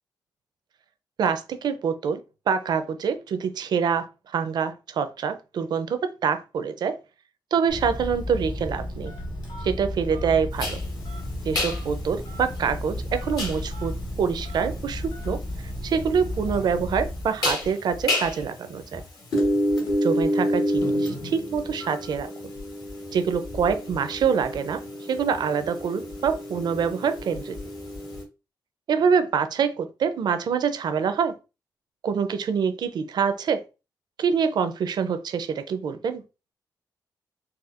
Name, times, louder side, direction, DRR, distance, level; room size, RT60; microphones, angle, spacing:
voice 1, 1.2-2.2 2.5-7.0 7.5-9.1 9.6-10.8 11.5-15.4 15.8-19.0 20.0-22.3 23.1-24.8 25.1-27.6 28.9-31.4 32.0-33.6 34.2-36.2, right 6 dB, 65° right, 0.4 m, -25 dB
Telephone, 7.7-17.4, left 1 dB, 85° left, 0.9 m, -33 dB
sound 1, 10.6-28.2, left 1 dB, 60° left, 1.1 m, -30 dB
4.1 x 2.2 x 2.4 m
cardioid pair, 115°, 8 cm